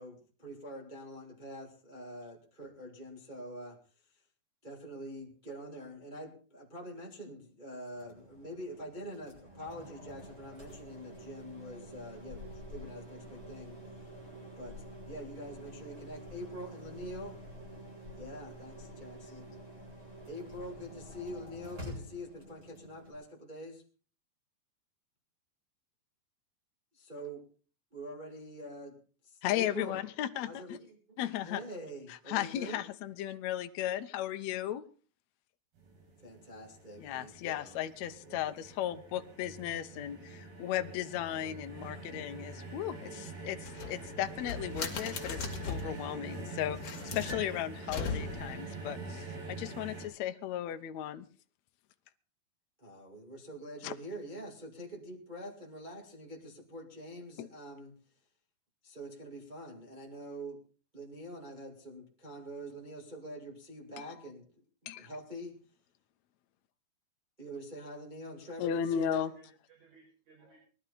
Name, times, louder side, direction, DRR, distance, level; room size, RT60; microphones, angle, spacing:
voice 1, 0.0-3.8 4.6-12.4 12.7-13.8 14.6-17.3 18.2-19.6 20.3-23.8 26.9-27.4 27.9-29.0 29.2-30.0 30.4-32.8 36.2-37.8 38.2-38.6 52.8-57.9 58.8-60.6 60.9-65.5 67.4-69.3, equal, 15° right, -2 dB, 1.9 m, -45 dB
sound 1, 7.9-23.1, equal, 30° right, 8.7 m, -48 dB
voice 2, 29.4-30.8 31.2-31.6 32.3-34.8 37.0-51.3 53.8-53.9 57.4-57.5 64.9-65.1 68.6-69.3, left 11 dB, 75° left, 8 dB, 1.6 m, -36 dB
sound 2, 35.8-50.1, right 3 dB, 85° right, 6.3 m, -45 dB
sound 3, 43.6-46.0 46.7-48.6, left 5 dB, 45° left, 2.9 m, -39 dB
voice 3, 68.3-70.6, right 6 dB, 65° right, -2 dB, 6.5 m, -61 dB
20.5 x 12.5 x 4.2 m, 0.39 s
omnidirectional pair, 4.3 m